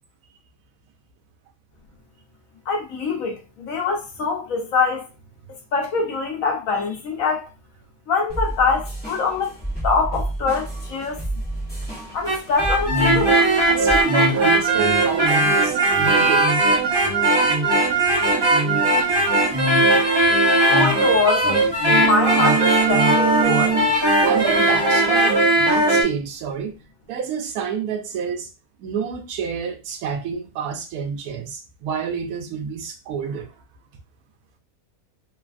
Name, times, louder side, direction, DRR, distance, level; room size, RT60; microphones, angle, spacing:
voice 1, 2.7-5.1 5.7-7.5 8.1-9.5 9.8-11.2 12.1-13.4 20.7-23.9, left 4 dB, 65° left, 1.1 m, -24 dB
sound 1, 8.3-14.0, right 1 dB, 10° left, 0.9 m, -30 dB
sound 2, 12.1-26.0, right 2 dB, 40° right, 0.4 m, -18 dB
voice 2, 13.7-16.5 24.2-26.8 27.1-28.5 28.8-33.5, right 7 dB, 75° right, 1.1 m, -28 dB
3.2 x 2.3 x 2.4 m
omnidirectional pair, 1.6 m